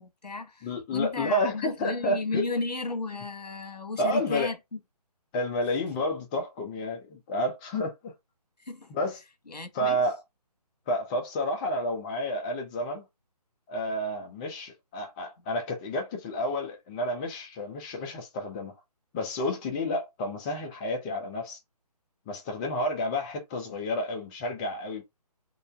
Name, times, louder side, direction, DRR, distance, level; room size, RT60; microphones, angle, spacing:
voice 1, 0.0-4.8 8.6-8.9 9.5-10.0, left 3 dB, 85° left, 1.3 m, -34 dB
voice 2, 0.6-2.6 4.0-4.5 5.3-8.1 8.9-9.2 9.7-10.2 10.9-13.0 13.7-18.7 19.1-21.6 22.3-25.0, left 1 dB, 10° left, 0.6 m, -30 dB
3.8 x 2.6 x 3.3 m
figure-of-eight pair, 155°, 21 cm